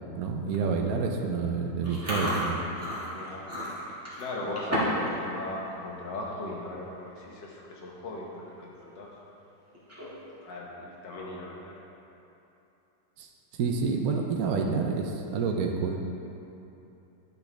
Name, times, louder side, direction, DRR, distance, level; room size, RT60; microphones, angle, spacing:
voice 1, 0.2-2.6 13.2-13.3 13.6-16.0, right 5 dB, 65° right, 2 dB, 1.0 m, -28 dB
Chewing mastication, 1.8-5.1 5.4-5.7 6.1-6.4 7.1-7.2 7.4-7.8 8.2-8.3 9.7-10.3, equal, 10° right, 1.7 m, -33 dB
voice 2, 3.1-9.1 10.4-11.8, left 2 dB, 85° left, -2 dB, 1.8 m, -38 dB
11.0 x 5.9 x 3.3 m, 2.9 s
omnidirectional pair, 1.9 m